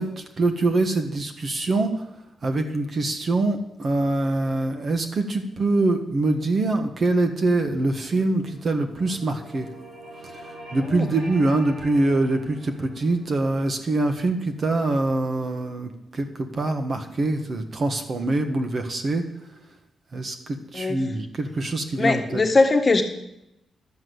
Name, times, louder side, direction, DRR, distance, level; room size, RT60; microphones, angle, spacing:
voice 1, 0.0-1.9 2.4-9.7 10.2-19.2 20.1-22.4, right 2 dB, 45° right, 6 dB, 1.5 m, -24 dB
sound 1, 5.4-17.6, right 1 dB, 85° right, 5.2 m, -47 dB
voice 2, 22.0-23.0, left 3 dB, 30° left, 4 dB, 1.5 m, -20 dB
12.0 x 7.5 x 8.0 m, 0.82 s
cardioid pair, 125°, 0 cm